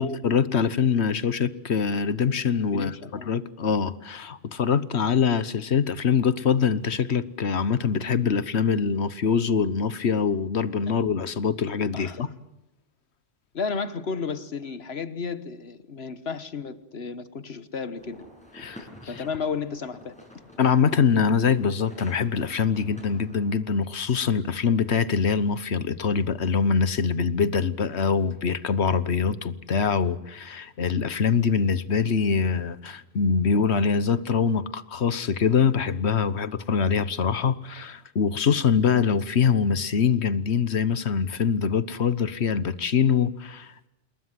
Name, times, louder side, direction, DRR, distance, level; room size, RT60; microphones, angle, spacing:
voice 1, 0.0-12.3 18.6-18.9 20.6-43.9, left 6 dB, 85° left, 1.4 m, -24 dB
voice 2, 2.7-3.4 11.9-12.2 13.5-18.2 19.1-20.2, left 5 dB, 70° left, 1.6 m, -33 dB
sound 1, 17.9-23.5, left 1 dB, 5° left, 6.8 m, -48 dB
27.5 x 21.5 x 7.7 m
omnidirectional pair, 1.1 m